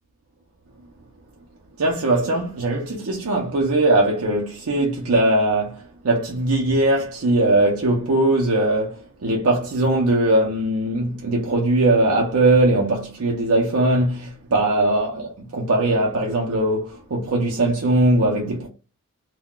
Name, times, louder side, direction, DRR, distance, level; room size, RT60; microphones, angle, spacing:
voice 1, 1.8-9.0 9.2-18.7, right 2 dB, 75° right, 0.6 m, -20 dB
2.2 x 2.2 x 3.6 m
head